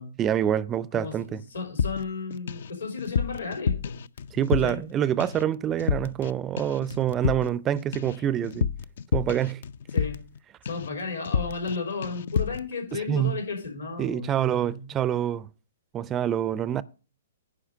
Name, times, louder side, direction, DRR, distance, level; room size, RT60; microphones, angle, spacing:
voice 1, 0.2-1.4 4.3-8.7 9.1-9.6 12.9-13.4 14.0-15.5 15.9-16.8, right 10 dB, 20° right, 0.4 m, -26 dB
voice 2, 0.9-4.0 4.6-4.8 9.9-10.2 10.6-14.9, left 4 dB, 80° left, 4.7 m, -34 dB
sound 1, 1.8-2.7 3.0-4.9 5.2-5.5 5.8-6.3 6.6-10.4 10.7-11.0 11.3-11.8 12.0-12.7, left 6 dB, 60° left, 0.5 m, -29 dB
10.0 x 4.9 x 6.9 m
hypercardioid pair, 125°, 0 cm